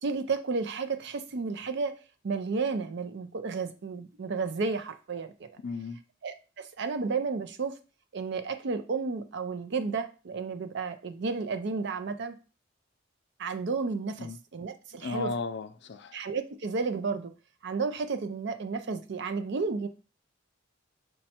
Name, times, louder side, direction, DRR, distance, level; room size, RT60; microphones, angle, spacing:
voice 1, 0.0-1.9 2.2-5.5 6.2-7.8 8.1-12.3 13.4-15.3 16.1-17.3 17.6-19.9, right 4 dB, 60° right, 0.5 m, -32 dB
voice 2, 5.6-6.0 14.2-14.4 15.0-16.2, left 3 dB, 60° left, 0.5 m, -35 dB
5.2 x 2.2 x 4.2 m
head